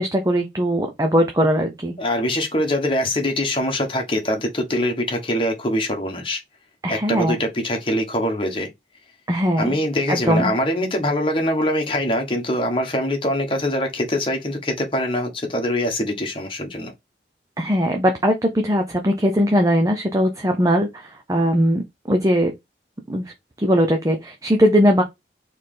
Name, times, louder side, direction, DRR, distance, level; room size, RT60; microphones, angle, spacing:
voice 1, 0.0-1.9 6.8-7.4 9.3-9.7 10.1-10.5 17.6-22.5 23.1-23.3 23.6-25.0, equal, 20° right, 0.6 m, -20 dB
voice 2, 2.0-6.4 6.9-8.7 9.6-16.9, left 1 dB, 30° left, 1.3 m, -23 dB
4.4 x 3.2 x 3.7 m
head